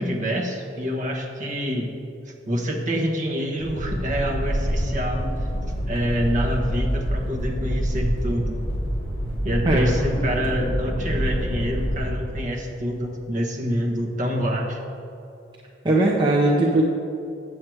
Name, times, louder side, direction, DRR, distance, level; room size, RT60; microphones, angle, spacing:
voice 1, 0.0-1.9 2.5-5.3 5.9-8.6 9.4-14.8, equal, 45° right, 1 dB, 1.2 m, -26 dB
sound 1, 3.6-12.1, equal, 30° left, 1.8 m, -26 dB
voice 2, 9.6-10.1 15.8-16.8, right 2 dB, 25° right, -3 dB, 0.7 m, -19 dB
7.7 x 7.6 x 4.6 m, 2.6 s
head